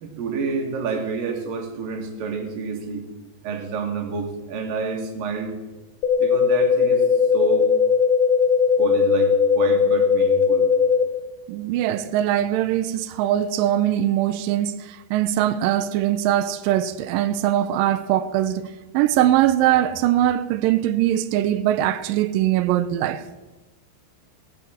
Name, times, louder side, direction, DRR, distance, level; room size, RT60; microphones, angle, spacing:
voice 1, 0.0-3.0 3.4-5.6 6.2-7.1 7.3-7.7 8.8-10.7, right 5 dB, 65° right, 3.3 m, -29 dB
sound 1, 6.0-11.0, left 6 dB, 75° left, 2.8 m, -18 dB
voice 2, 11.5-18.6 18.9-23.2, right 12 dB, 85° right, 2.0 m, -21 dB
17.5 x 7.8 x 7.2 m
omnidirectional pair, 4.5 m